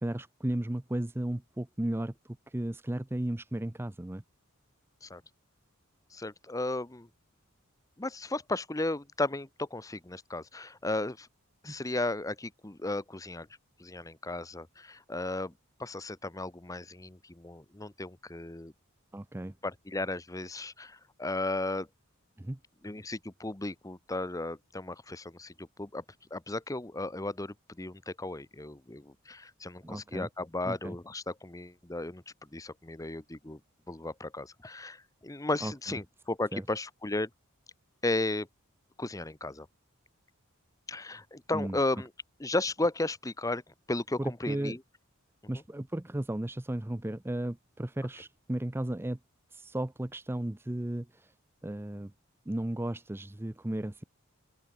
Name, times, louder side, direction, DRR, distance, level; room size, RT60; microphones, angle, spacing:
voice 1, 0.0-4.2 11.7-11.8 19.1-19.5 22.4-22.6 29.8-30.3 30.6-31.0 35.6-35.7 36.5-36.6 41.5-41.8 44.2-44.8 45.5-49.2 49.5-51.3 51.6-52.1 52.5-54.0, right 1 dB, 10° right, 0.5 m, -34 dB
voice 2, 6.1-7.1 8.0-11.3 11.6-13.5 13.8-15.5 15.8-18.7 19.6-21.9 22.8-26.0 26.3-32.2 32.5-33.6 33.9-37.3 38.0-38.5 39.0-39.7 40.9-42.1 42.4-43.6 43.9-44.8, left 2 dB, 15° left, 0.8 m, -35 dB
open air
head